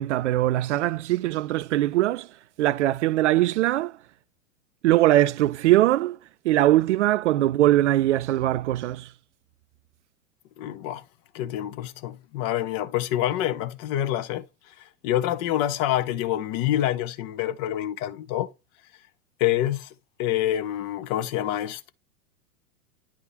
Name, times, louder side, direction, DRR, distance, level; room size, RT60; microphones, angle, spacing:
voice 1, 0.0-4.0 4.8-6.2 6.4-9.1, right 15 dB, 50° right, 0.5 m, -21 dB
voice 2, 10.6-11.0 11.3-14.4 14.8-18.5 19.4-19.9 20.2-21.9, left 12 dB, 40° left, 0.9 m, -27 dB
10.0 x 3.5 x 4.0 m
figure-of-eight pair, 100°, 46 cm